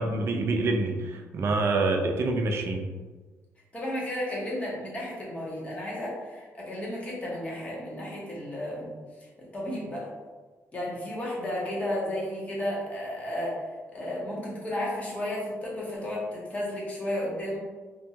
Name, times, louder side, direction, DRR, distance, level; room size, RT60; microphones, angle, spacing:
voice 1, 0.0-2.8, right 2 dB, 55° right, 3 dB, 0.4 m, -26 dB
voice 2, 3.7-8.9 9.2-10.1 10.7-17.6, left 1 dB, 25° left, -5 dB, 0.9 m, -33 dB
2.6 x 2.2 x 2.8 m, 1.3 s
cardioid pair, 115°, 5 cm